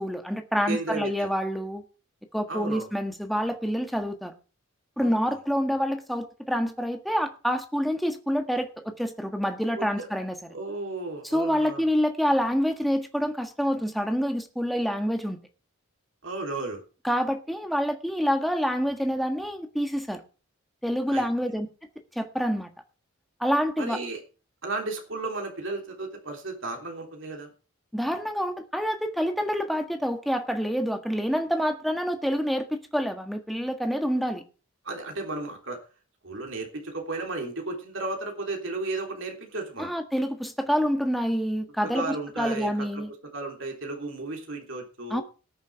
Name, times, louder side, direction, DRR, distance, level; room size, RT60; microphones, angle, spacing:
voice 1, 0.0-1.8 2.3-4.3 5.0-10.3 11.2-15.4 17.0-20.2 20.8-21.7 22.1-22.7 23.4-24.0 27.9-34.4 39.8-43.1 45.1-45.2, equal, ahead, 1.5 m, -27 dB
voice 2, 0.7-1.3 2.5-2.9 5.0-5.1 9.8-10.1 10.5-11.8 16.2-16.8 21.1-21.3 23.8-24.2 24.6-27.5 34.8-35.8 36.2-39.9 41.8-43.0 43.3-45.2, right 2 dB, 60° right, 3.2 m, -34 dB
19.0 x 7.0 x 4.7 m
head